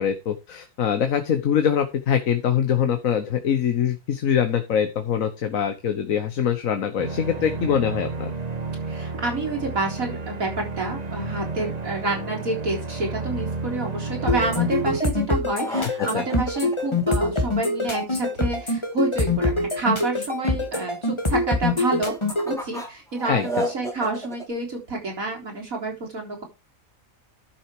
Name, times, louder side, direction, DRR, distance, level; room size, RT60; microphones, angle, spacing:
voice 1, 0.0-8.3 15.8-15.9 16.1-16.2 23.3-23.7, left 8 dB, 75° left, 8 dB, 1.5 m, -23 dB
sound 1, 7.0-15.0, right 3 dB, 30° right, 1.3 m, -31 dB
voice 2, 8.9-22.1 22.4-26.4, right 3 dB, 85° right, 0 dB, 4.5 m, -28 dB
sound 2, 14.3-22.5, left 2 dB, 20° left, 1.8 m, -24 dB
sound 3, 15.5-17.7 21.8-24.4, right 1 dB, ahead, 2.8 m, -33 dB
12.0 x 6.4 x 4.8 m, 0.26 s
omnidirectional pair, 1.4 m